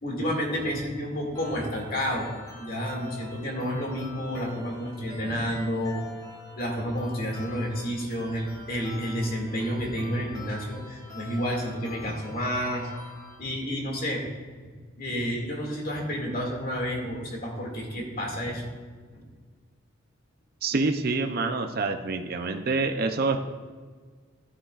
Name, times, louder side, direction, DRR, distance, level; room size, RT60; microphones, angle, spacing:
voice 1, 0.0-2.3 2.6-6.1 6.6-12.9 13.4-14.2 15.0-18.6 19.1-19.3, equal, 45° left, 0 dB, 2.2 m, -30 dB
sound 1, 1.3-13.3, left 3 dB, 20° left, 2.8 m, -45 dB
voice 2, 20.6-23.4, right 3 dB, 50° right, 5 dB, 0.5 m, -26 dB
13.0 x 9.7 x 2.4 m, 1.5 s
head